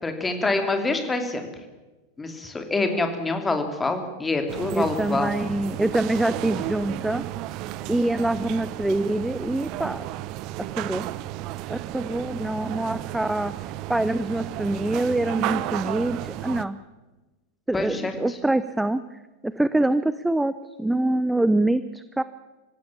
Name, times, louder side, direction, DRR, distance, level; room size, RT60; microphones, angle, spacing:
voice 1, 0.0-1.5 2.2-5.3 17.7-18.4, left 3 dB, 10° left, 6 dB, 2.9 m, -26 dB
sound 1, 4.5-16.7, right 15 dB, 40° right, 0.8 m, -33 dB
voice 2, 4.7-7.2 7.9-10.0 10.8-11.1 11.7-13.5 13.9-16.8 17.7-20.5 20.8-22.2, right 1 dB, 5° right, 14 dB, 0.6 m, -25 dB
25.5 x 16.0 x 7.3 m, 1.2 s
figure-of-eight pair, 90°, 0 cm